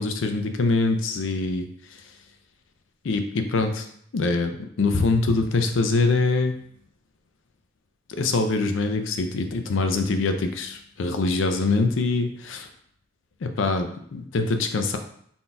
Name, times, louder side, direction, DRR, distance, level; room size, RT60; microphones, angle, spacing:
voice 1, 0.0-1.7 3.0-3.9 4.1-6.5 8.1-12.7 13.4-15.0, left 3 dB, 70° left, 6 dB, 0.5 m, -24 dB
3.9 x 3.9 x 2.3 m, 0.64 s
head